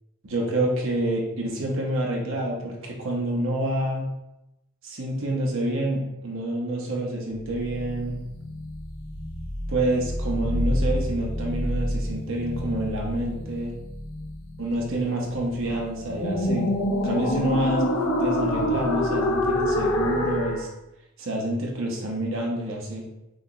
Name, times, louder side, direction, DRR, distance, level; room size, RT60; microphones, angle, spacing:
voice 1, 0.2-4.1 4.8-8.2 9.7-13.8 14.6-16.7 17.0-20.7 21.2-23.1, right 1 dB, 65° right, -1 dB, 0.9 m, -28 dB
sound 1, 7.4-20.7, left 1 dB, 75° left, 0.8 m, -27 dB
6.3 x 2.3 x 3.0 m, 0.91 s
head